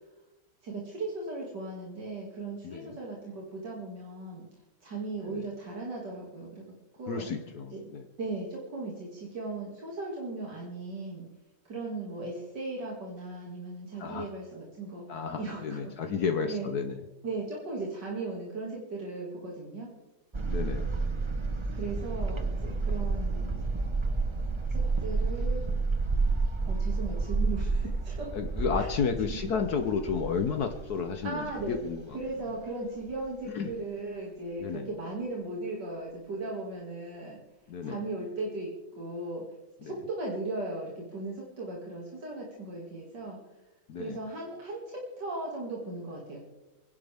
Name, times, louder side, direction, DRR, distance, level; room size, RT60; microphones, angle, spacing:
voice 1, 0.6-4.4 4.8-7.3 7.7-7.8 8.2-11.3 11.6-16.1 16.5-16.7 17.2-19.9 21.7-23.6 24.7-25.7 26.7-28.3 28.8-28.9 29.3-29.4 31.2-31.7 32.1-37.4 37.8-39.5 39.8-43.4 44.0-46.4, right 2 dB, 75° right, -3 dB, 3.1 m, -37 dB
voice 2, 2.6-3.0 5.3-5.5 7.1-8.1 14.0-14.3 15.1-17.0 20.5-20.9 28.3-32.0 33.5-33.7 34.6-34.9 37.7-38.0 39.8-39.9 43.9-44.2, left 6 dB, 65° left, 6 dB, 1.5 m, -32 dB
sound 1, 20.3-32.3 32.7-32.8 33.1-33.2, right 3 dB, 25° right, 0.6 m, -30 dB
28.0 x 11.0 x 3.6 m, 1.0 s
omnidirectional pair, 1.9 m